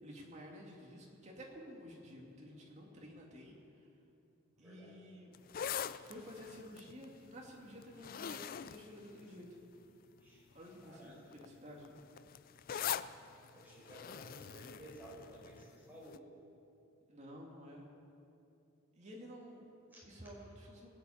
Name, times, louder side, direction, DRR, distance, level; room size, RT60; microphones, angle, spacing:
voice 1, 0.0-3.9 4.6-5.3 6.0-9.5 10.5-12.0 17.1-17.9 19.0-19.7 20.0-20.9, equal, 30° right, -1 dB, 2.4 m, -52 dB
voice 2, 4.5-5.0 10.2-10.4 10.8-11.2 13.5-16.4 19.9-20.3, right 1 dB, 10° right, -5 dB, 4.7 m, -55 dB
sound 1, 5.3-9.8 10.5-10.8 11.1-15.7 16.1-16.2, left 9 dB, 40° left, 0.3 m, -43 dB
20.5 x 7.0 x 8.9 m, 2.7 s
head